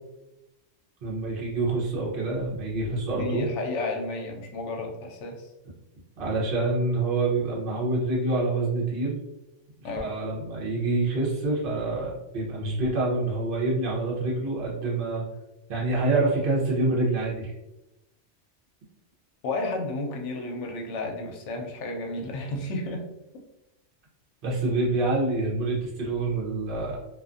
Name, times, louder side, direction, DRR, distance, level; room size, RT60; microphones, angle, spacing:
voice 1, 1.0-3.5 6.2-9.2 9.8-15.2 15.7-17.5 24.4-27.0, right 2 dB, 50° right, -4 dB, 0.9 m, -26 dB
voice 2, 3.1-5.5 9.8-10.1 19.4-23.0, left 2 dB, 75° left, 2 dB, 0.9 m, -32 dB
2.4 x 2.4 x 2.4 m, 0.94 s
omnidirectional pair, 1.2 m